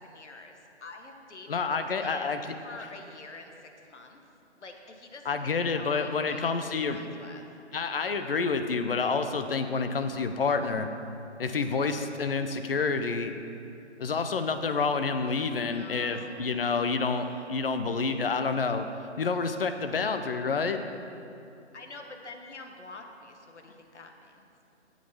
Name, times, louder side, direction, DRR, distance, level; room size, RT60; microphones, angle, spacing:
voice 1, 0.0-4.2 4.6-5.4 5.8-7.4 15.6-16.8 17.2-17.5 19.8-20.1 21.7-24.4, left 3 dB, 75° left, 4 dB, 1.3 m, -47 dB
voice 2, 1.5-2.4 5.3-7.0 7.7-10.9 11.4-13.3 14.0-18.9 19.2-20.8, left 4 dB, 55° left, 8 dB, 0.8 m, -28 dB
8.5 x 7.7 x 5.8 m, 2.7 s
figure-of-eight pair, 150°, 35 cm